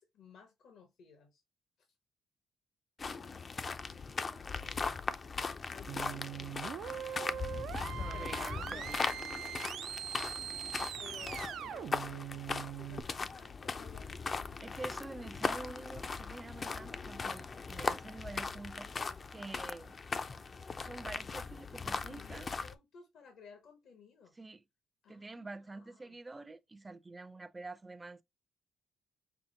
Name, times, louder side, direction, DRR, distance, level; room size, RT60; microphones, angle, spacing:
voice 1, 0.0-1.4 1.8-1.9 5.3-7.0 8.1-8.9 11.0-15.2 21.8-24.3 25.0-26.2, left 6 dB, 70° left, 1.1 m, -57 dB
sound 1, 3.0-22.7, left 4 dB, 35° left, 0.5 m, -39 dB
voice 2, 4.3-4.8 7.9-9.1 14.6-18.9 19.3-19.9 20.8-22.5 24.4-24.6 25.1-28.2, right 3 dB, 20° right, 0.5 m, -47 dB
sound 2, 5.9-13.0, right 10 dB, 75° right, 0.4 m, -42 dB
5.7 x 2.0 x 3.9 m
cardioid pair, 90°, 0 cm